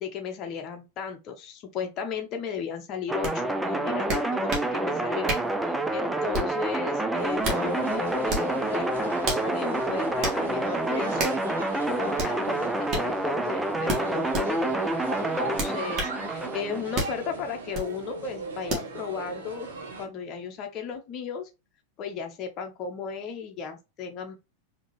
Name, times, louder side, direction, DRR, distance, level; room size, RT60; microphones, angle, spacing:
voice 1, 0.0-5.3 5.6-11.4 11.8-14.7 15.2-19.7 20.0-21.5 22.0-24.3, left 6 dB, 35° left, 1.0 m, -35 dB
sound 1, 3.1-16.8, right 1 dB, 5° right, 0.5 m, -28 dB
sound 2, 3.2-3.3 4.1-4.7 5.3-5.5 6.3-6.6 7.2-7.6 8.3-8.5 9.2-9.5 10.2-10.4 11.2-11.4 12.2-12.3 12.9-13.1 13.9-14.5 15.6-16.2 16.9-17.2 17.7-17.9 18.7-18.9, right 2 dB, 30° right, 1.9 m, -30 dB
sound 3, 7.2-20.1, right 4 dB, 65° right, 1.0 m, -39 dB
5.0 x 3.0 x 3.0 m
figure-of-eight pair, 90°, 0 cm